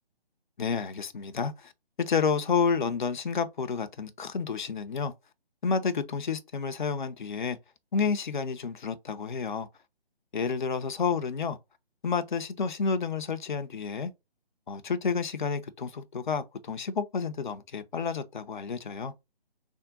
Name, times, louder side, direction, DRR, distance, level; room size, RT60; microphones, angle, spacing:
voice 1, 0.6-1.7 2.0-5.1 5.6-7.6 7.9-9.7 10.3-11.6 12.0-14.1 14.7-19.1, left 5 dB, 50° left, 0.5 m, -30 dB
3.5 x 2.1 x 3.7 m
figure-of-eight pair, 150°, 30 cm